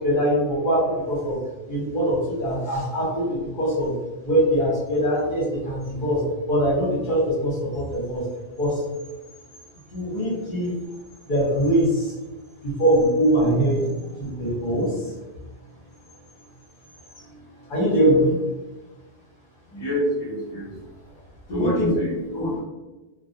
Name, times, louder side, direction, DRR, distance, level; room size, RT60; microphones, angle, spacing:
voice 1, 0.0-1.4 1.7-3.9 4.2-8.2 8.6-8.8 9.9-10.7 11.3-12.1 12.6-14.9 17.7-18.3 21.5-21.9, equal, 55° left, -6 dB, 0.9 m, -22 dB
voice 2, 19.7-20.7 21.5-22.6, left 1 dB, 30° left, -7 dB, 0.6 m, -27 dB
2.2 x 2.1 x 2.7 m, 1.1 s
omnidirectional pair, 1.0 m